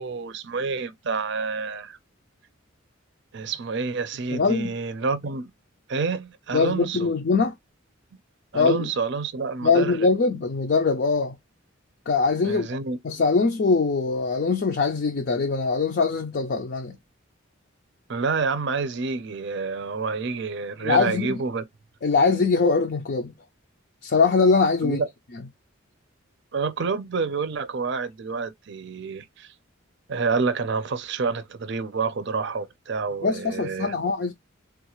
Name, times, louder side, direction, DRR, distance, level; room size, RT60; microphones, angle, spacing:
voice 1, 0.0-2.0 3.3-5.5 5.9-7.1 8.5-10.1 12.4-13.0 18.1-21.6 24.8-25.1 26.5-29.5 30.1-33.9, right 4 dB, 55° right, 0.5 m, -28 dB
voice 2, 4.3-4.7 6.5-7.5 8.5-8.9 9.6-11.4 12.1-12.7 13.0-17.0 20.8-21.4 22.0-23.3 24.0-25.0 33.2-34.3, left 4 dB, 50° left, 0.4 m, -22 dB
3.5 x 2.4 x 3.0 m
head